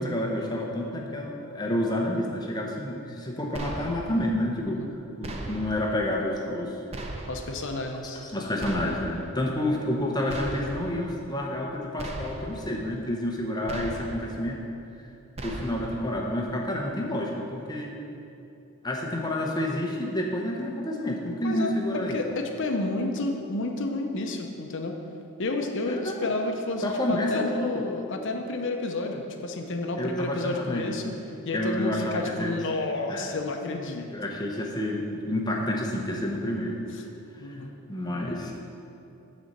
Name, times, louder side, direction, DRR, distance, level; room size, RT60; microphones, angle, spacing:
voice 1, 0.0-4.8 5.2-6.7 8.1-14.6 15.4-17.9 18.8-22.2 25.9-26.3 26.8-27.8 30.0-30.9 31.5-32.5 33.1-33.3 34.1-36.8 37.9-38.5, left 1 dB, 20° left, -1 dB, 0.8 m, -29 dB
sound 1, 3.5-4.2 5.2-5.9 6.9-7.6 8.6-9.3 10.3-11.0 12.0-12.7 13.7-14.4 15.4-16.1, right 1 dB, 30° right, 0.6 m, -37 dB
voice 2, 7.3-8.2 21.4-25.0 25.4-31.1 31.5-34.1 37.4-37.7, left 2 dB, 55° left, 3 dB, 0.7 m, -30 dB
9.2 x 4.2 x 6.6 m, 2.7 s
head